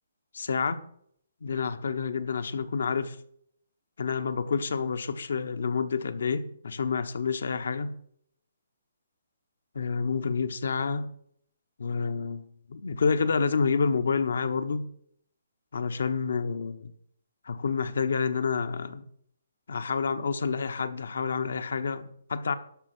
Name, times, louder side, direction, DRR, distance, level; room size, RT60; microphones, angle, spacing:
voice 1, 0.3-0.8 1.4-3.2 4.0-8.0 9.7-11.1 11.8-12.4 12.7-14.9 15.7-16.9 17.4-19.1 19.7-22.5, left 5 dB, 70° left, 1.1 m, -28 dB
12.0 x 5.7 x 6.2 m
hypercardioid pair, 150°, 0 cm